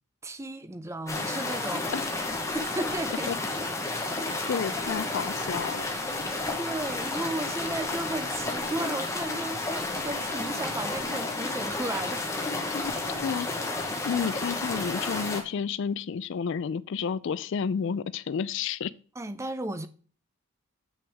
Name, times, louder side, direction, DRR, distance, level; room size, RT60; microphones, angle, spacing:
voice 1, 0.2-1.9 2.5-3.3 6.3-12.3 19.2-19.9, right 1 dB, 15° right, 0.5 m, -34 dB
sound 1, 1.1-15.4, left 2 dB, 15° left, 1.1 m, -31 dB
voice 2, 4.4-5.9 12.7-13.5 13.8-18.9, left 6 dB, 60° left, 0.3 m, -31 dB
7.8 x 6.1 x 3.5 m
head